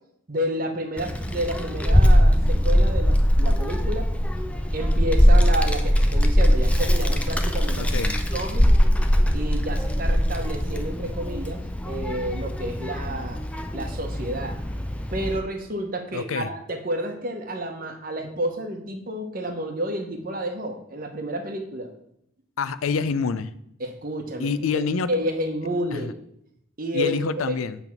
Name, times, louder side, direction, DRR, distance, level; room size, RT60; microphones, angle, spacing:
voice 1, 0.3-4.1 4.7-7.8 8.3-8.7 9.3-13.4 13.7-14.6 15.1-21.9 23.8-24.8 25.1-26.2 26.8-27.1 27.5-27.6, right 1 dB, 45° right, 4 dB, 1.0 m, -30 dB
Child speech kid speaking, 1.0-15.4, equal, 5° left, 0.4 m, -21 dB
voice 2, 7.8-8.2 16.1-16.5 22.6-23.5 24.4-25.1 25.9-26.1 26.9-27.8, left 5 dB, 90° left, 14 dB, 0.4 m, -26 dB
8.2 x 3.5 x 5.9 m, 0.75 s
head